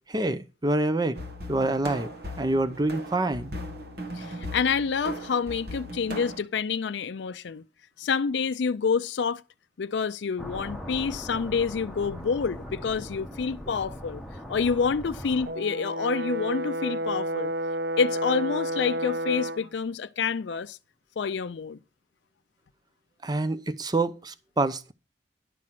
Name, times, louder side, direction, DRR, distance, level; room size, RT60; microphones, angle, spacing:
voice 1, 0.1-1.2 1.5-2.1 2.4-3.5 23.2-24.9, right 2 dB, 20° right, 0.6 m, -26 dB
sound 1, 1.1-6.4, equal, 60° right, 1.6 m, -38 dB
voice 2, 4.2-7.6 8.0-9.4 9.8-14.2 14.5-17.5 18.0-20.8 21.2-21.8, left 5 dB, 75° left, 0.4 m, -28 dB
sound 2, 10.4-15.5, equal, ahead, 1.2 m, -40 dB
Brass instrument, 15.5-19.7, right 1 dB, 80° right, 0.5 m, -30 dB
11.0 x 6.2 x 5.9 m
head